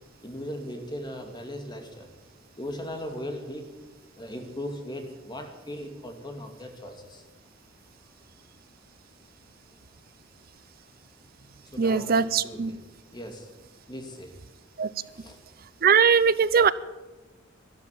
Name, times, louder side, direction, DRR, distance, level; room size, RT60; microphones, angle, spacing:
voice 1, 0.2-2.1 2.5-3.7 4.2-7.2 11.7-12.8 13.1-13.5 13.9-14.3 15.0-15.4, equal, 20° left, 4 dB, 2.3 m, -38 dB
voice 2, 11.8-12.7 14.8-14.9 15.8-16.7, right 6 dB, 45° right, 17 dB, 0.6 m, -20 dB
13.0 x 12.0 x 9.4 m, 1.1 s
head